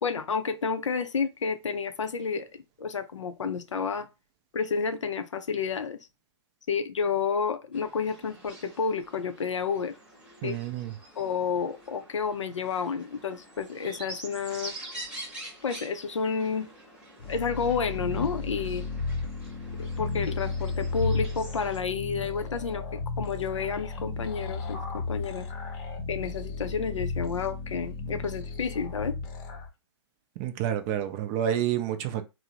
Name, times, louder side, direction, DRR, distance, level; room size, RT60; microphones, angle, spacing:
voice 1, 0.0-2.5 2.8-4.1 4.5-6.0 6.7-10.0 10.4-10.6 11.2-14.7 15.6-16.7 17.3-18.8 19.8-25.5 26.1-29.1, left 5 dB, 85° left, 0.4 m, -30 dB
sound 1, 7.7-21.8, right 1 dB, 5° right, 0.8 m, -46 dB
voice 2, 10.4-10.9 30.4-32.2, right 10 dB, 30° right, 0.4 m, -29 dB
sound 2, 17.2-29.7, left 4 dB, 30° left, 0.6 m, -34 dB
2.6 x 2.0 x 2.7 m
hypercardioid pair, 125°, 15 cm